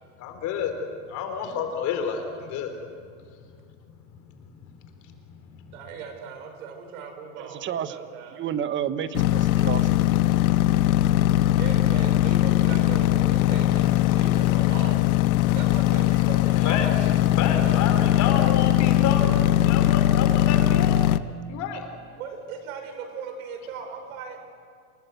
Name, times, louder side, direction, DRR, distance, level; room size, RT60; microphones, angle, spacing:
voice 1, 0.2-0.7 1.0-2.7 5.5-5.6 16.6-16.9 17.4-19.3 19.6-21.2 21.5-21.8, left 7 dB, 40° left, 6 dB, 3.8 m, -29 dB
voice 2, 5.7-8.4 11.6-15.1 15.5-17.1 22.2-24.4, right 6 dB, 80° right, 4 dB, 5.9 m, -38 dB
voice 3, 7.4-8.0 8.3-9.9, right 9 dB, 30° right, 12 dB, 1.1 m, -30 dB
sound 1, 9.1-21.2, left 13 dB, 85° left, 0.9 m, -20 dB
28.0 x 19.0 x 8.2 m, 2.2 s
supercardioid pair, 140°, 42 cm